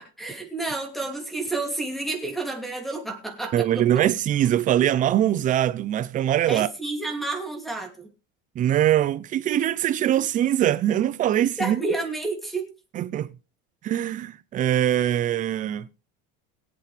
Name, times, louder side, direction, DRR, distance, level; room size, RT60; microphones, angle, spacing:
voice 1, 0.0-3.8 6.5-8.1 11.6-12.7, right 3 dB, ahead, 2.7 m, -30 dB
voice 2, 3.5-6.7 8.6-11.8 12.9-13.3 13.8-15.9, right 11 dB, 25° right, 0.6 m, -22 dB
22.0 x 8.2 x 3.4 m
cardioid pair, 160°, 29 cm